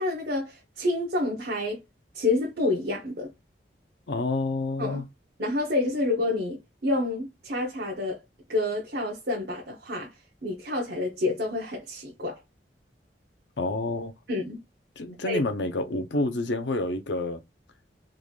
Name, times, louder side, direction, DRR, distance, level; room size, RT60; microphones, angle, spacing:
voice 1, 0.0-1.8 2.1-3.3 4.8-5.0 5.4-8.2 8.5-10.1 10.4-12.4 14.3-14.6 15.2-15.4, left 2 dB, 65° right, 0.9 m, -28 dB
voice 2, 4.1-5.0 13.6-14.1 15.0-17.4, left 2 dB, 85° left, 0.7 m, -28 dB
3.8 x 3.2 x 2.4 m
head